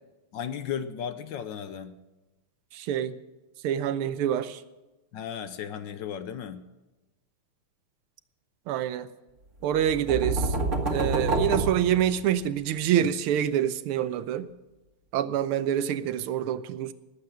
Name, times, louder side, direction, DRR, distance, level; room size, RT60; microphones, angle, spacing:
voice 1, 0.3-2.0 5.1-6.6, left 8 dB, 65° left, 1.3 m, -35 dB
voice 2, 2.7-3.2 3.6-4.6 8.7-9.1 9.6-10.6 10.9-14.5 15.1-16.9, right 10 dB, 85° right, 1.6 m, -26 dB
sound 1, 9.7-12.6, right 2 dB, 35° right, 1.9 m, -28 dB
19.0 x 8.2 x 6.2 m
omnidirectional pair, 2.3 m